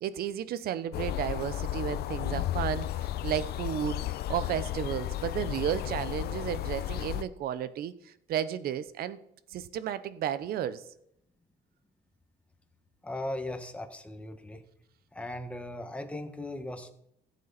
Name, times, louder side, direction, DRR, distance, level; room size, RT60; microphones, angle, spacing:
voice 1, 0.0-9.2 9.5-10.8, right 10 dB, 65° right, 15 dB, 0.9 m, -33 dB
sound 1, 0.9-7.2, left 13 dB, 70° left, 0.7 m, -33 dB
voice 2, 13.0-14.6 15.1-16.9, left 1 dB, 5° left, 6 dB, 1.4 m, -38 dB
15.0 x 8.3 x 4.1 m, 0.76 s
cardioid pair, 110°, 17 cm